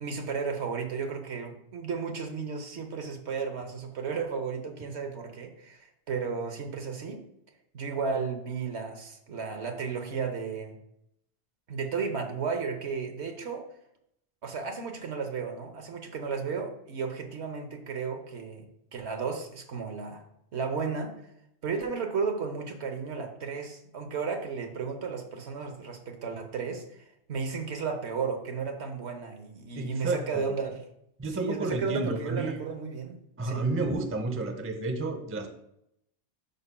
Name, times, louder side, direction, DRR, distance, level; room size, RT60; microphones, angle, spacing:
voice 1, 0.0-7.2 7.7-10.7 11.7-13.6 14.4-18.7 18.9-20.2 20.5-21.1 21.6-30.8 31.3-33.7, right 5 dB, 75° right, 5 dB, 1.3 m, -34 dB
voice 2, 29.7-30.4 31.2-32.6 33.4-35.5, right 2 dB, 15° right, 6 dB, 0.5 m, -31 dB
11.0 x 5.5 x 2.2 m, 0.77 s
omnidirectional pair, 1.2 m